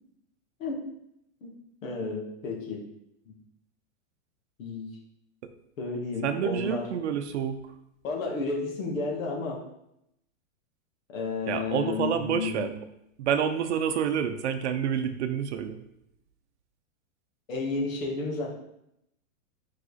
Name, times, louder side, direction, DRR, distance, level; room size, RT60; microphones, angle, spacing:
voice 1, 1.8-2.9 3.2-3.3 4.6-4.9 5.8-6.9 8.0-9.6 11.1-12.7 15.0-15.2 17.5-18.5, left 4 dB, 75° left, -1 dB, 2.2 m, -32 dB
voice 2, 6.2-7.6 11.5-12.7 13.2-15.8, right 8 dB, 55° right, 9 dB, 0.7 m, -28 dB
5.2 x 4.9 x 4.2 m, 0.79 s
supercardioid pair, 175°, 40 cm